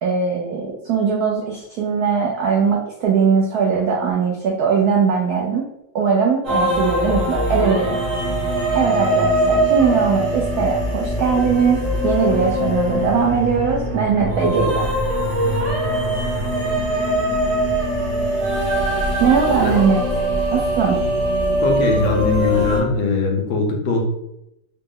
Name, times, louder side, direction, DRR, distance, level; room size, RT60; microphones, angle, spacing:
voice 1, 0.0-5.7 5.9-8.0 8.7-14.9 19.2-20.0 20.5-21.0, right 6 dB, 90° right, -1 dB, 0.8 m, -20 dB
sound 1, 6.4-22.8, equal, 30° right, 0.7 m, -21 dB
voice 2, 18.7-19.1 19.6-19.7 21.6-24.0, left 3 dB, 75° left, 1 dB, 1.5 m, -21 dB
4.0 x 2.0 x 3.6 m, 0.82 s
omnidirectional pair, 2.2 m